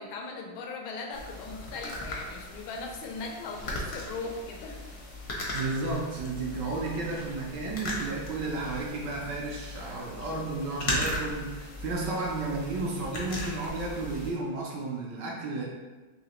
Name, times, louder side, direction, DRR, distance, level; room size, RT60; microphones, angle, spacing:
voice 1, 0.0-4.8, left 3 dB, 85° left, 1 dB, 1.4 m, -39 dB
sound 1, 1.1-14.3, left 1 dB, 65° left, 0.7 m, -37 dB
voice 2, 5.5-15.7, right 3 dB, 70° right, -2 dB, 1.1 m, -33 dB
4.0 x 2.9 x 2.9 m, 1.3 s
omnidirectional pair, 2.2 m